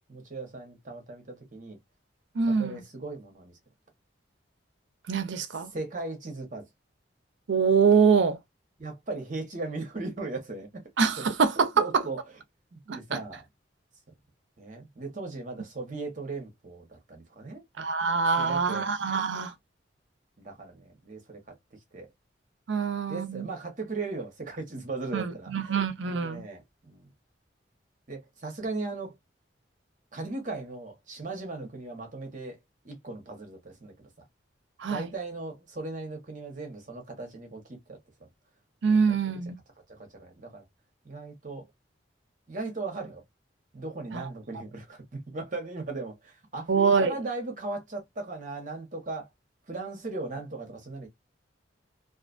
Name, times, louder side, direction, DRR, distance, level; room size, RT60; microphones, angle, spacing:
voice 1, 0.1-1.8 2.6-3.6 5.7-6.7 8.8-10.9 11.2-11.3 11.6-12.2 12.7-13.4 14.6-17.6 18.4-18.9 20.4-21.4 21.7-22.1 22.8-25.7 26.1-27.1 28.1-29.1 30.1-32.6 32.8-34.1 34.9-38.3 39.1-39.2 39.9-40.6 41.0-41.7 42.5-43.2 43.7-49.3 49.7-51.1, right 3 dB, 45° right, 0.9 m, -38 dB
voice 2, 2.3-2.8 5.1-5.7 7.5-8.4 11.0-12.0 12.9-13.2 17.8-19.5 22.7-23.5 25.1-26.5 34.8-35.1 38.8-39.6 44.1-44.2 46.7-47.1, right 5 dB, 75° right, 0.5 m, -24 dB
2.5 x 2.3 x 2.4 m
head